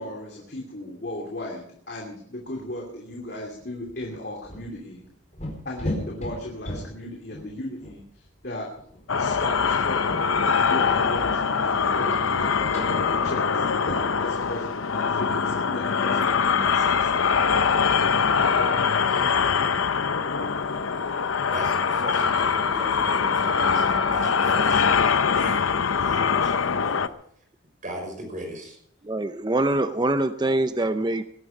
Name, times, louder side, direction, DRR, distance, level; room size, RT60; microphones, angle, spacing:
voice 1, 0.0-5.0 5.6-8.7 9.2-10.2 10.7-17.2, left 1 dB, 50° left, 0 dB, 2.8 m, -36 dB
sound 1, 2.6-2.7 3.0-3.2 3.5-10.5 10.9-11.2 11.5-11.7 12.1-12.3 12.7-13.6 13.8-17.5, left 1 dB, 35° left, 4.3 m, -38 dB
sound 2, 9.1-27.1, left 6 dB, 85° left, 0.8 m, -23 dB
voice 2, 21.5-25.6 26.0-27.0 27.8-28.8, equal, 40° right, 2 dB, 5.9 m, -38 dB
voice 3, 29.0-31.2, right 2 dB, 20° right, 10 dB, 0.5 m, -24 dB
20.0 x 11.5 x 5.1 m, 0.67 s
head